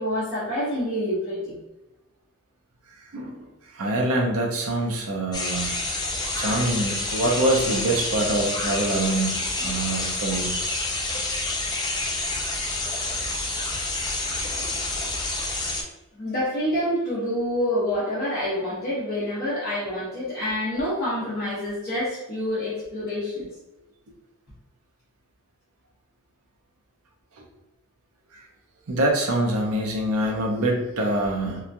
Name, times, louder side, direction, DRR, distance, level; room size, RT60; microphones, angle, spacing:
voice 1, 0.0-1.6 16.1-23.5, left 1 dB, 50° left, -11 dB, 0.9 m, -27 dB
voice 2, 3.1-3.4 3.7-5.8 6.3-10.5 11.1-11.4 28.9-31.6, right 1 dB, 70° right, 0 dB, 0.6 m, -25 dB
sound 1, 5.3-15.8, left 2 dB, 20° left, 0.4 m, -28 dB
2.9 x 2.3 x 2.5 m, 1.0 s
head